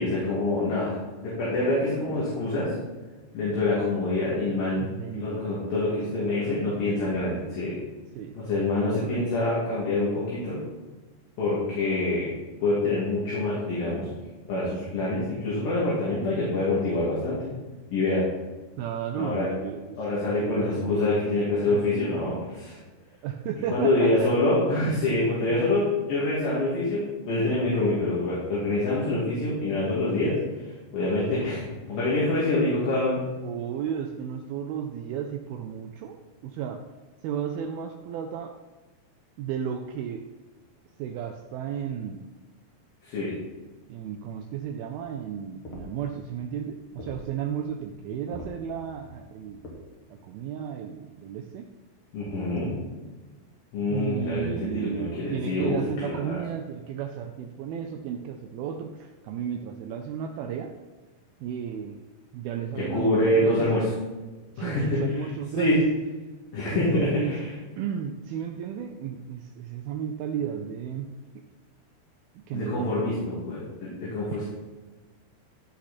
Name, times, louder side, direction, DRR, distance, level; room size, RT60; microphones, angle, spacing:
voice 1, 0.0-2.7 3.3-4.9 5.1-7.7 8.4-10.6 11.4-12.3 12.6-14.1 14.5-17.4 17.9-18.2 19.1-19.5 20.0-22.8 23.7-30.4 30.6-33.2 43.0-43.3 52.1-52.7 53.7-56.4 62.7-63.8 64.6-65.3 65.6-65.8 66.5-67.5 72.5-74.4, left 2 dB, 60° left, -7 dB, 3.9 m, -26 dB
voice 2, 4.8-5.8 6.1-6.7 8.2-8.3 8.8-9.3 18.8-21.2 21.7-21.8 23.2-24.3 25.1-25.6 29.4-29.7 33.4-36.8 37.2-38.5 39.4-40.2 41.0-42.2 43.9-49.7 50.1-51.7 53.9-60.7 61.4-62.0 62.3-63.7 64.6-65.8 66.7-67.4 67.8-71.1 71.4-71.5 72.5-73.1, right 8 dB, 80° right, 5 dB, 2.2 m, -34 dB
sound 1, 44.9-49.7, left 1 dB, 45° left, 2.0 m, -45 dB
14.5 x 5.8 x 4.2 m, 1.2 s
omnidirectional pair, 4.9 m